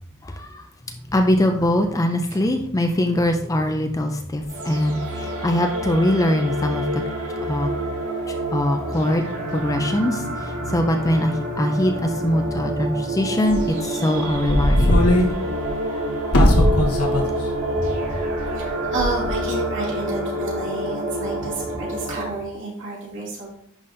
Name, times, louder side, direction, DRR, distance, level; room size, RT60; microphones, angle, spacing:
voice 1, 0.2-0.6 1.1-7.0 7.4-7.7 8.3-15.0 15.9-16.0, left 1 dB, 15° left, 5 dB, 0.4 m, -22 dB
sound 1, 4.5-22.3, right 1 dB, 75° right, 2.2 m, -28 dB
sound 2, 13.5-13.6 14.3-15.3 15.6-15.7 16.3-17.2 17.5-17.6 18.4-18.7 19.0-19.3, left 1 dB, 80° left, 1.2 m, -17 dB
voice 2, 18.9-23.5, right 2 dB, 55° right, -5 dB, 2.5 m, -30 dB
10.5 x 3.9 x 2.6 m, 0.69 s
head